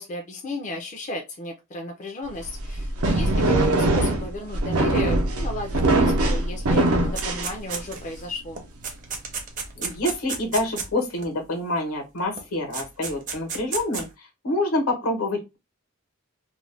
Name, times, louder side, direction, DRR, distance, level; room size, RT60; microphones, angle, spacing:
voice 1, 0.0-8.6, left 1 dB, 35° left, 3 dB, 0.4 m, -34 dB
sound 1, 2.4-8.1, right 2 dB, 75° right, 0.6 m, -22 dB
sound 2, 7.1-8.2 8.6-11.3 12.4-12.5 12.7-14.1, right 5 dB, 35° right, 0.6 m, -32 dB
voice 2, 9.8-15.6, left 1 dB, 80° left, 3 dB, 1.0 m, -27 dB
2.4 x 2.1 x 3.2 m, 0.23 s
head